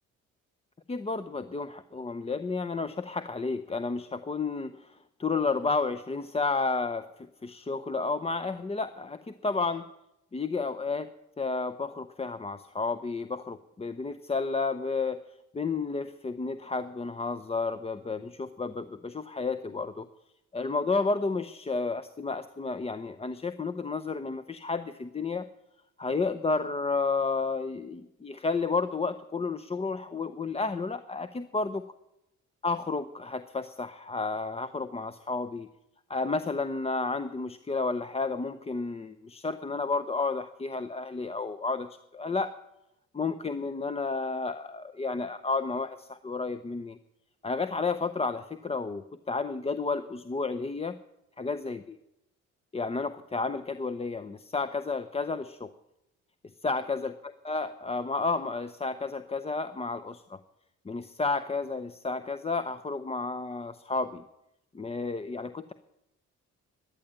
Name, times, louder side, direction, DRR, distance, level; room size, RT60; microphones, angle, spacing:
voice 1, 0.9-7.1 7.4-9.8 10.3-11.1 11.4-15.2 15.5-20.1 20.5-25.4 26.0-31.8 32.6-35.7 36.1-42.5 43.1-47.0 47.4-51.0 51.4-52.0 52.7-55.7 56.6-57.1 57.4-60.4 60.9-64.2 64.7-65.7, left 4 dB, 20° left, 11 dB, 0.6 m, -31 dB
11.5 x 10.0 x 8.8 m, 0.85 s
cardioid pair, 90°, 30 cm